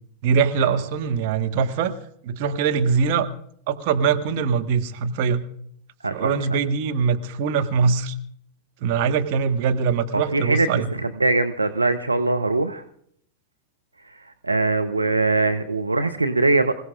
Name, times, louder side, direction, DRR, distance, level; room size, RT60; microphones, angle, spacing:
voice 1, 0.2-1.9 2.2-3.3 3.7-5.4 6.1-8.1 8.8-10.9, right 6 dB, 45° right, 6 dB, 1.4 m, -22 dB
voice 2, 6.0-6.4 10.1-12.8 14.0-16.8, right 2 dB, 80° right, 8 dB, 0.7 m, -22 dB
26.0 x 16.5 x 2.5 m, 0.65 s
figure-of-eight pair, 90°, 0 cm